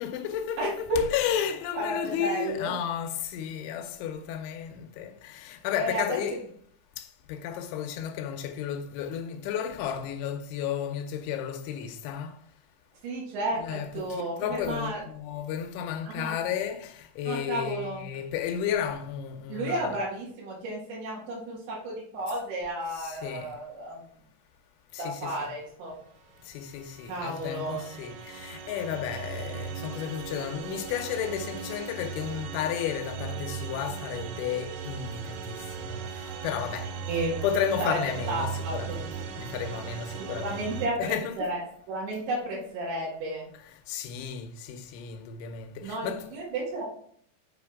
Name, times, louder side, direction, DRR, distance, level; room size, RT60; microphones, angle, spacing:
voice 1, 0.0-6.5 7.0-12.4 13.5-20.0 22.9-23.6 24.9-25.5 26.4-41.5 43.5-46.3, left 9 dB, 80° left, 2.9 m, -33 dB
voice 2, 0.6-1.0 1.7-2.7 5.8-6.2 13.0-15.0 16.1-16.3 17.3-18.0 19.5-24.0 25.0-26.0 27.1-27.9 37.1-37.4 37.8-38.0 38.3-39.0 40.4-41.6 41.9-43.5 45.8-46.9, right 1 dB, 65° right, 3.9 m, -32 dB
sound 1, 26.5-40.9, right 6 dB, 85° right, 3.4 m, -38 dB
7.6 x 6.1 x 3.5 m
omnidirectional pair, 5.8 m